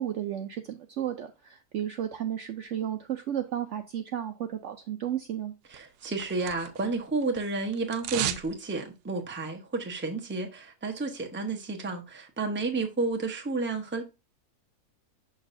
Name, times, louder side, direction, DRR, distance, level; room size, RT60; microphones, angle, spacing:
voice 1, 0.0-5.5, right 10 dB, 65° right, 0.7 m, -33 dB
voice 2, 5.7-14.0, right 3 dB, 10° right, 0.6 m, -31 dB
sound 1, 5.7-7.0 7.2-8.5 8.8-8.9, right 11 dB, 85° right, 1.1 m, -34 dB
6.1 x 6.1 x 2.6 m
omnidirectional pair, 1.6 m